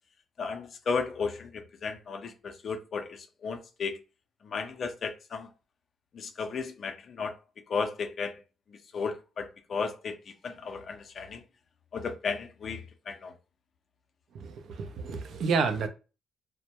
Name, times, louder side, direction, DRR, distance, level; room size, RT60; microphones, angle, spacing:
voice 1, 0.4-4.0 4.4-5.5 6.1-7.3 7.7-8.4 8.9-10.1 10.4-11.4 11.9-13.3, left 5 dB, 50° left, 0.4 m, -34 dB
voice 2, 14.3-15.9, right 5 dB, 65° right, 0.4 m, -30 dB
2.1 x 2.1 x 2.8 m
cardioid pair, 90°, 0 cm